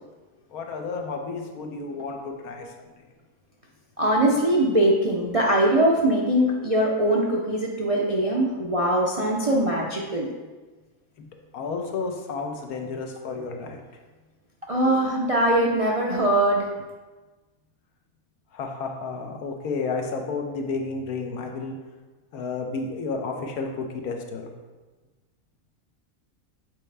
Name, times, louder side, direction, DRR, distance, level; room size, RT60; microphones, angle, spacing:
voice 1, 0.5-2.7 11.5-13.8 18.5-21.7 22.3-24.5, left 4 dB, 90° left, 2 dB, 1.3 m, -31 dB
voice 2, 4.0-10.3 14.7-16.7, right 1 dB, 50° right, -3 dB, 0.4 m, -22 dB
8.2 x 4.3 x 3.3 m, 1.3 s
omnidirectional pair, 1.5 m